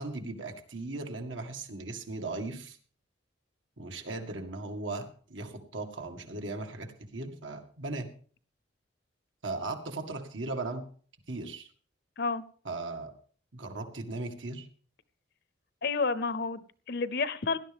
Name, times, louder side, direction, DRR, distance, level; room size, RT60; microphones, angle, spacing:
voice 1, 0.0-2.8 3.8-8.1 9.4-10.8 11.3-11.7 12.7-13.1 13.5-14.7, right 2 dB, 85° right, 4 dB, 2.1 m, -37 dB
voice 2, 15.8-17.6, left 4 dB, 60° left, 15 dB, 0.8 m, -30 dB
17.5 x 11.0 x 3.6 m, 0.44 s
head